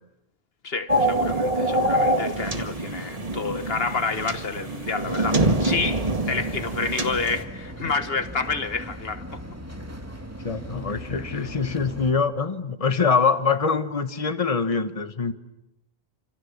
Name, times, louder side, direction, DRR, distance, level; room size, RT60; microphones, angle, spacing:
voice 1, 0.6-9.4 11.3-11.5, left 4 dB, 65° left, 1.4 m, -29 dB
sound 1, 0.9-7.4, right 1 dB, 35° right, 1.9 m, -25 dB
sound 2, 5.3-12.1, right 1 dB, 15° right, 2.3 m, -38 dB
voice 2, 10.4-15.3, left 5 dB, 35° left, 1.4 m, -24 dB
29.5 x 27.0 x 7.3 m
omnidirectional pair, 1.1 m